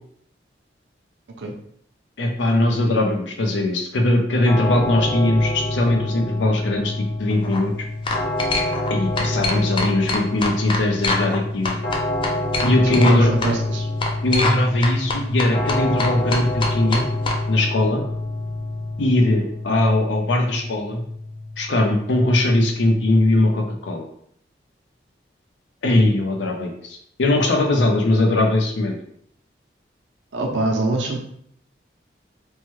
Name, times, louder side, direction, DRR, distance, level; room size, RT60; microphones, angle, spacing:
voice 1, 2.2-6.9 7.2-7.7 8.9-11.8 12.6-13.3 14.2-17.0 17.5-18.0 19.0-21.0 21.6-24.1 25.8-29.0, left 1 dB, 85° left, 2 dB, 0.6 m, -20 dB
sound 1, 4.4-23.3, left 1 dB, 50° left, 0.8 m, -27 dB
sound 2, 7.3-7.6 8.1-8.9 9.2-11.4 11.6-13.2 13.4-13.5 14.0-14.6 14.8-17.4, left 2 dB, 25° left, 0.3 m, -24 dB
voice 2, 12.8-13.9 30.3-31.2, right 2 dB, 90° right, 1 dB, 0.6 m, -24 dB
3.1 x 2.2 x 3.1 m, 0.67 s
head